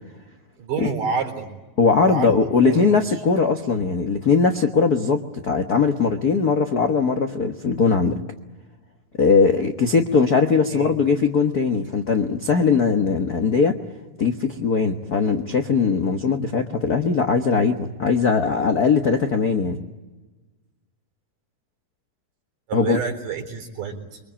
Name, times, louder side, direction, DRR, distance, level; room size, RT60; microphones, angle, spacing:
voice 1, 0.6-1.5 2.0-3.2 10.7-11.0 22.7-24.2, right 5 dB, 70° right, 4 dB, 5.5 m, -29 dB
voice 2, 1.8-8.2 9.2-13.8 14.2-19.8 22.7-23.0, left 5 dB, 70° left, 5 dB, 0.9 m, -20 dB
28.5 x 24.0 x 8.7 m, 1.2 s
omnidirectional pair, 3.9 m